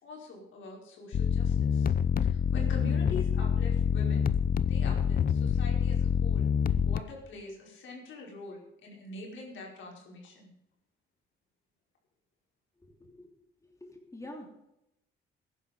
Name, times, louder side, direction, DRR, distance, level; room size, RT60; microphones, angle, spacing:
voice 1, 0.0-1.9 2.2-4.3 4.7-10.5, left 3 dB, 75° left, -1 dB, 5.1 m, -44 dB
sound 1, 1.1-7.0, left 8 dB, 45° left, 0.7 m, -26 dB
voice 2, 13.8-14.5, left 1 dB, 15° left, 1 dB, 3.2 m, -45 dB
15.0 x 10.5 x 5.2 m, 0.88 s
cardioid pair, 90°, 20 cm